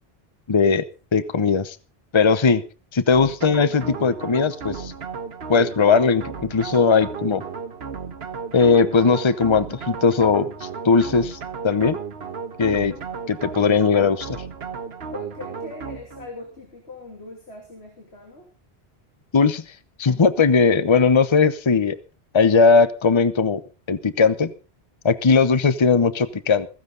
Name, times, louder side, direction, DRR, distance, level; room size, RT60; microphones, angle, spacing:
voice 1, 0.5-0.9 1.1-1.8 2.1-2.6 2.9-4.9 5.5-7.4 8.5-10.5 10.8-11.4 11.6-12.0 12.6-12.9 13.3-14.4 19.3-19.6 20.0-22.0 22.3-23.6 23.9-24.5 25.0-26.7, left 5 dB, 30° left, 14 dB, 0.8 m, -18 dB
sound 1, 3.1-16.3, right 6 dB, 75° right, 1.4 m, -34 dB
voice 2, 15.1-18.5, left 2 dB, 85° left, 1 dB, 3.1 m, -40 dB
15.5 x 15.5 x 3.8 m, 0.33 s
omnidirectional pair, 1.1 m